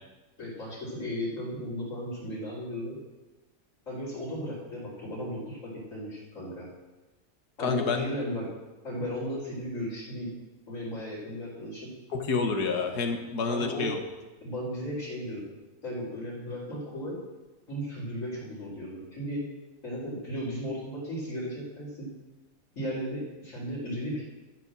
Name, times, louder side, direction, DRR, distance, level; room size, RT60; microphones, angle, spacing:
voice 1, 0.4-3.0 3.9-6.7 7.6-8.4 8.8-10.3 10.7-11.9 13.5-13.9 14.4-15.4 15.8-17.2 17.7-19.4 19.8-22.1 22.7-24.2, equal, 55° left, -10 dB, 4.0 m, -35 dB
voice 2, 7.6-8.0 12.1-14.0, left 4 dB, 85° left, 5 dB, 1.9 m, -28 dB
13.0 x 6.2 x 7.4 m, 1.1 s
omnidirectional pair, 1.6 m